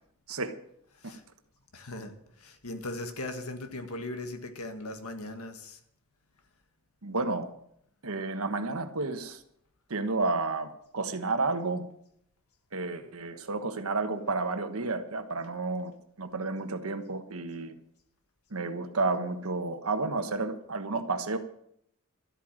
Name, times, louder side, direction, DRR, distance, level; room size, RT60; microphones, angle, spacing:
voice 1, 0.9-1.2 1.7-5.8, left 2 dB, 90° left, 1.8 m, -39 dB
voice 2, 7.0-7.5 8.0-9.4 9.9-11.9 12.7-17.7 18.5-21.4, right 3 dB, 75° right, 1.3 m, -31 dB
13.0 x 8.8 x 7.6 m
head